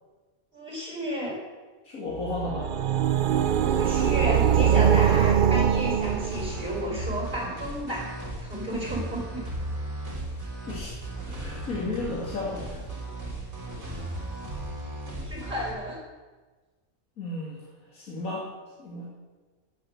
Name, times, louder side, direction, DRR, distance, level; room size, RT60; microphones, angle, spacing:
voice 1, 0.5-1.4 3.6-8.1 8.4-9.4 15.3-16.0, right 1 dB, 35° right, -3 dB, 5.8 m, -32 dB
voice 2, 1.8-2.7 10.3-11.0 11.3-13.0 17.2-17.6 17.9-18.5 18.8-19.1, left 2 dB, 90° left, -4 dB, 2.9 m, -34 dB
sound 1, 2.2-6.8, right 8 dB, 75° right, 0.4 m, -22 dB
sound 2, 5.7-15.7, right 1 dB, 50° right, 3.6 m, -36 dB
13.0 x 9.8 x 7.8 m, 1.3 s
omnidirectional pair, 1.4 m